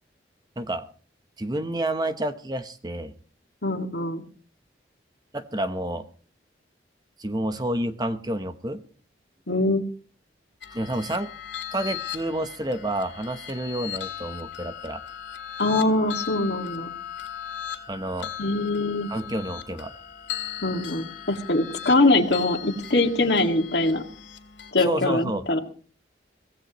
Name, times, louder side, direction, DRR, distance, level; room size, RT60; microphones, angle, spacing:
voice 1, 0.6-0.9 1.4-3.1 5.3-6.1 7.2-8.8 10.7-11.3 11.7-15.0 17.9-18.3 19.1-19.9 24.8-25.4, right 1 dB, 20° right, 10 dB, 0.9 m, -29 dB
voice 2, 3.6-4.2 9.5-9.8 15.6-16.9 18.4-19.1 20.6-24.0 24.7-25.6, left 2 dB, 70° left, 5 dB, 2.0 m, -23 dB
sound 1, 10.6-24.7, left 10 dB, 90° left, 2.2 m, -38 dB
23.5 x 16.5 x 3.0 m, 0.40 s
head